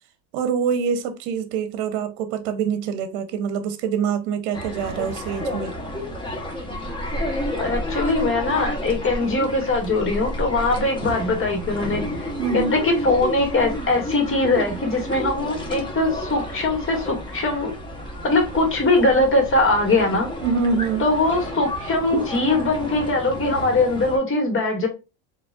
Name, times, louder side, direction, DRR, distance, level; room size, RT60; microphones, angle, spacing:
voice 1, 0.3-5.7 10.8-10.9 12.4-12.7 20.4-21.1, right 6 dB, 70° right, 0.8 m, -25 dB
sound 1, 4.5-24.2, equal, 10° left, 1.1 m, -31 dB
voice 2, 7.6-17.7 18.2-20.3 21.0-24.9, left 2 dB, 30° left, 1.8 m, -21 dB
4.2 x 2.9 x 2.3 m
supercardioid pair, 100°, 42 cm